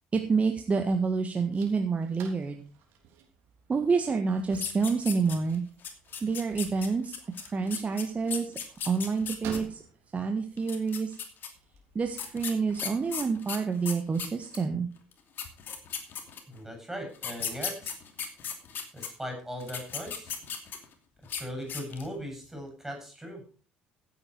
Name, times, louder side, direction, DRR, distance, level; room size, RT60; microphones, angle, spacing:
voice 1, 0.1-2.6 3.7-5.6 6.2-7.1 7.4-8.5 8.8-9.8 10.1-11.2 11.9-14.9, right 4 dB, 30° right, 5 dB, 1.6 m, -28 dB
sound 1, 0.6-12.9, right 7 dB, 65° right, 3.3 m, -51 dB
sound 2, 4.5-5.6 5.8-9.6 10.6-11.5 12.2-14.6 15.1-15.2 15.4-16.6 17.2-19.1 19.6-20.9 21.2-21.4 21.7-22.1, left 7 dB, 50° left, 2.7 m, -36 dB
voice 2, 16.5-18.0 18.9-20.4 21.3-23.4, equal, 10° right, 3 dB, 7.6 m, -39 dB
15.0 x 8.7 x 4.7 m, 0.38 s
hypercardioid pair, 60°, 4 cm